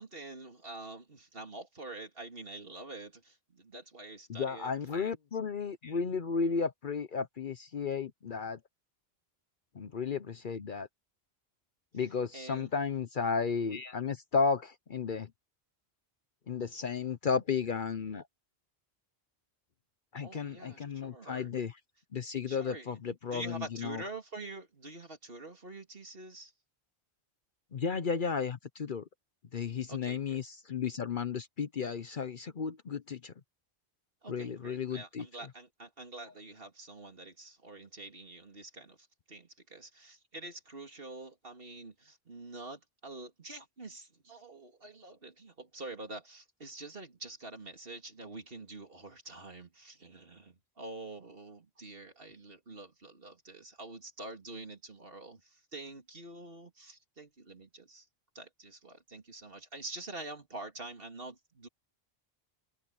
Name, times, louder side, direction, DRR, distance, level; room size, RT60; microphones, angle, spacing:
voice 1, 0.0-4.7 12.3-12.7 20.2-21.5 22.5-22.9 23.3-26.5 29.9-30.4 34.2-58.1 58.3-61.7, right 2 dB, 60° right, 3.2 m, -46 dB
voice 2, 4.3-8.6 9.7-10.9 11.9-15.3 16.5-18.2 20.1-21.8 22.1-24.0 27.7-29.0 29.5-33.3 34.3-35.3, left 5 dB, 55° left, 0.9 m, -33 dB
omnidirectional pair, 1.1 m